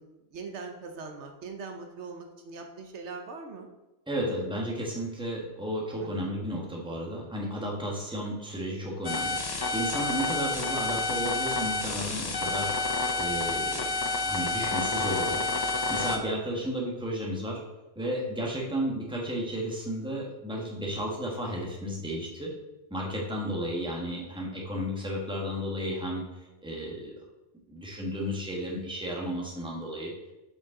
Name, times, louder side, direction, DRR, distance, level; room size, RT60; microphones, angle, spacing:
voice 1, 0.0-3.7 6.0-6.4 10.2-10.3, right 4 dB, 80° right, 4 dB, 1.1 m, -42 dB
voice 2, 4.1-9.4 9.7-15.4 15.9-17.6 17.9-22.5 22.9-26.2 26.6-27.1 27.7-30.1, equal, 5° right, -2 dB, 1.3 m, -33 dB
sound 1, 9.0-16.2, left 3 dB, 30° left, 0.4 m, -29 dB
7.8 x 5.2 x 3.7 m, 1.0 s
omnidirectional pair, 1.2 m